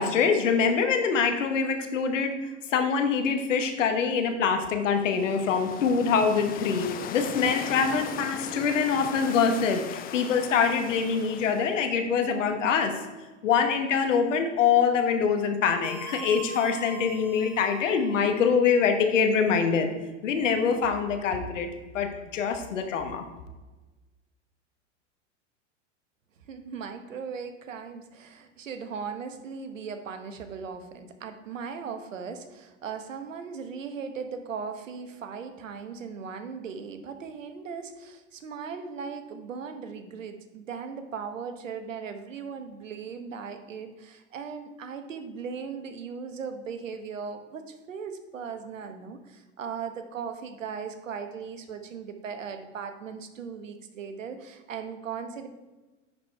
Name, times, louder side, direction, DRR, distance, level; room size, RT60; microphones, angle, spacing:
voice 1, 0.0-12.9 13.4-19.9 20.2-21.7 21.9-23.2, left 6 dB, 80° left, 6 dB, 1.3 m, -24 dB
sound 1, 4.9-12.0, left 9 dB, 25° left, 0.4 m, -38 dB
sound 2, 15.8-18.2, right 2 dB, 50° right, 2.2 m, -43 dB
voice 2, 26.5-55.5, right 6 dB, 85° right, 8 dB, 1.1 m, -38 dB
10.0 x 4.3 x 4.5 m, 1.2 s
hypercardioid pair, 100°, 37 cm